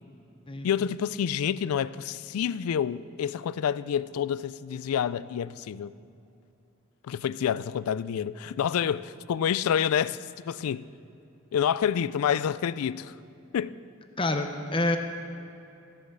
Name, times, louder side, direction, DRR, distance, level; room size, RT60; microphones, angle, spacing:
voice 1, 0.6-5.9 7.0-10.2 10.5-10.9 11.5-13.1 13.5-13.8, left 8 dB, 90° left, 0.3 m, -28 dB
voice 2, 14.2-15.0, left 2 dB, 25° left, 0.6 m, -27 dB
14.0 x 8.0 x 6.6 m
head